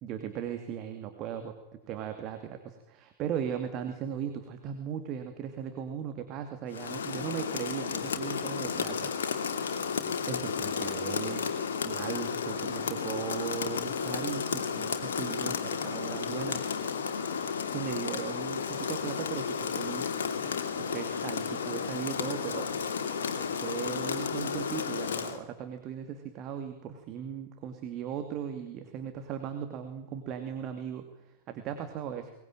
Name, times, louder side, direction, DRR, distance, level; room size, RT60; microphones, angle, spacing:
voice 1, 0.0-1.5 1.9-9.6 10.3-11.5 11.8-16.7 17.7-20.1 20.8-22.8 23.4-32.3, right 8 dB, 35° right, 7 dB, 2.5 m, -38 dB
Rain, 6.7-25.4, left 6 dB, 65° left, 2.6 m, -33 dB
22.5 x 21.0 x 9.1 m, 0.97 s
figure-of-eight pair, 90°, 0 cm